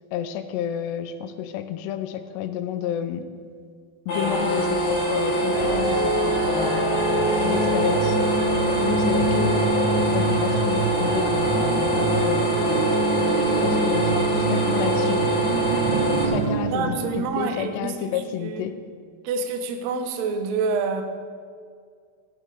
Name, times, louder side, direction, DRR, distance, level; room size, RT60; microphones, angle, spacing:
voice 1, 0.1-3.3 4.1-6.8 7.4-8.2 8.8-9.7 10.1-12.9 13.6-15.3 16.3-18.7, left 9 dB, 80° left, 10 dB, 3.0 m, -30 dB
sound 1, 4.1-16.2, right 1 dB, 45° left, 3.9 m, -24 dB
sound 2, 5.5-17.5, right 2 dB, 65° right, 1.9 m, -26 dB
voice 2, 15.5-15.9 16.7-18.7 19.2-21.0, right 5 dB, 80° right, 7 dB, 1.5 m, -28 dB
15.0 x 10.5 x 6.6 m, 2.1 s
omnidirectional pair, 4.8 m